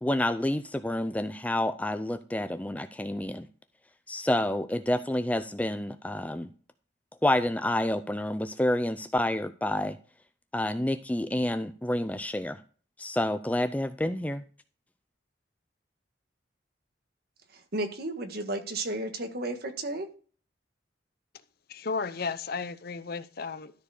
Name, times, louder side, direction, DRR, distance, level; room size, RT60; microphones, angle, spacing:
voice 1, 0.0-3.5 4.1-6.5 7.2-10.0 10.5-12.6 13.0-14.4, left 1 dB, 10° left, 10 dB, 0.4 m, -29 dB
voice 2, 17.7-20.1, right 2 dB, 55° right, 6 dB, 1.5 m, -33 dB
voice 3, 21.7-23.7, left 4 dB, 55° left, 13 dB, 0.7 m, -34 dB
13.0 x 4.6 x 4.8 m, 0.40 s
head